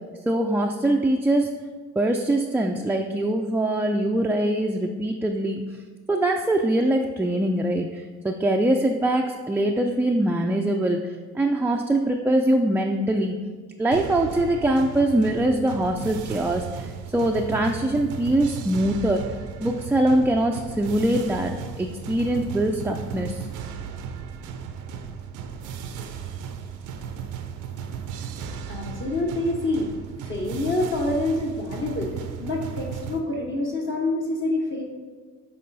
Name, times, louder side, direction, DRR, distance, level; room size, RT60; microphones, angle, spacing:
voice 1, 0.3-1.5 2.0-5.6 6.1-13.4 13.8-19.2 19.6-23.5, right 1 dB, 5° right, 1 dB, 0.3 m, -23 dB
sound 1, 13.9-33.2, right 7 dB, 85° right, 0.6 m, -35 dB
voice 2, 28.4-29.9 30.2-32.1 32.4-34.8, left 2 dB, 40° left, -2 dB, 0.9 m, -27 dB
7.5 x 3.8 x 4.0 m, 1.5 s
cardioid pair, 90°, 30 cm